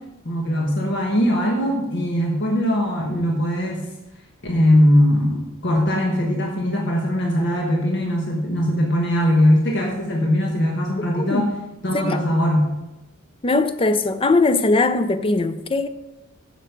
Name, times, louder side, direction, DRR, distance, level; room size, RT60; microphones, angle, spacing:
voice 1, 0.2-3.8 4.4-11.5 11.8-12.7, equal, 60° left, 1.3 m, -20 dB
voice 2, 11.1-11.5 11.9-12.2 13.4-15.9, left 3 dB, 25° left, 0.5 m, -20 dB
9.0 x 7.3 x 5.2 m
head